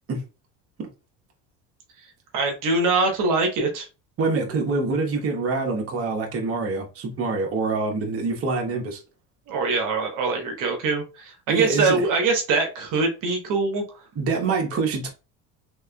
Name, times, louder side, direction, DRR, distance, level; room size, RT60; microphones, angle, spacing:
voice 1, 2.3-3.9 9.5-13.8, right 3 dB, 60° right, 1.2 m, -23 dB
voice 2, 4.2-9.0 11.5-12.0 14.2-15.1, right 3 dB, 40° right, 1.2 m, -25 dB
3.5 x 3.4 x 2.2 m
supercardioid pair, 95°, 36 cm